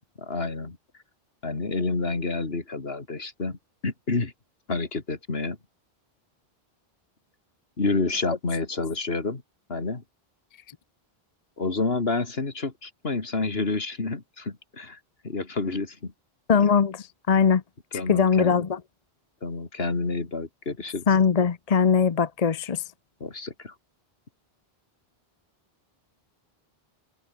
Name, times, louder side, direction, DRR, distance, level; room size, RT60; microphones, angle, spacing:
voice 1, 0.2-0.8 1.4-3.6 3.8-4.3 4.7-5.6 7.8-9.4 9.7-10.0 11.6-15.0 15.2-16.1 17.9-18.7 19.4-21.1 23.2-23.7, left 3 dB, 70° left, 2.8 m, -29 dB
voice 2, 16.5-17.6 18.1-18.8 21.1-22.8, left 6 dB, 40° left, 0.8 m, -21 dB
omnidirectional pair, 1.1 m